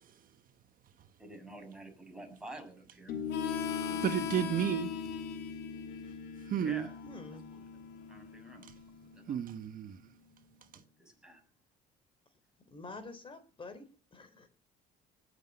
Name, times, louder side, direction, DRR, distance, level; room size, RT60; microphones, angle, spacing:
voice 1, 1.2-4.5 6.6-6.9 7.3-7.6 8.1-8.7 9.1-9.4 11.0-11.4, right 1 dB, 5° right, 7.4 m, -50 dB
sound 1, 3.1-10.0, left 6 dB, 60° left, 3.0 m, -41 dB
Harmonica, 3.3-8.6, left 9 dB, 85° left, 2.0 m, -42 dB
voice 2, 4.0-5.1 6.4-6.9 8.7-8.8 9.3-10.1 10.7-10.8, right 9 dB, 55° right, 1.4 m, -33 dB
voice 3, 7.0-7.5 12.7-14.5, left 3 dB, 30° left, 3.7 m, -48 dB
19.5 x 8.3 x 8.3 m
cardioid pair, 110°, 17 cm